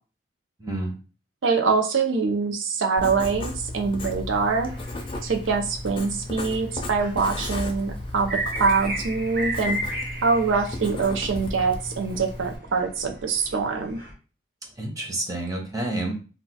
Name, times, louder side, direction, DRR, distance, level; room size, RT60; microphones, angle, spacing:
voice 1, 0.6-1.0 14.8-16.1, right 1 dB, 20° right, 1 dB, 0.6 m, -29 dB
voice 2, 1.4-4.7 5.2-9.8 10.2-14.0, right 4 dB, 85° right, 4 dB, 0.5 m, -24 dB
Writing, 3.0-12.6, left 1 dB, 25° left, 0.4 m, -35 dB
sound 1, 4.7-14.1, right 1 dB, 50° right, 0.7 m, -36 dB
2.3 x 2.3 x 3.9 m, 0.35 s
head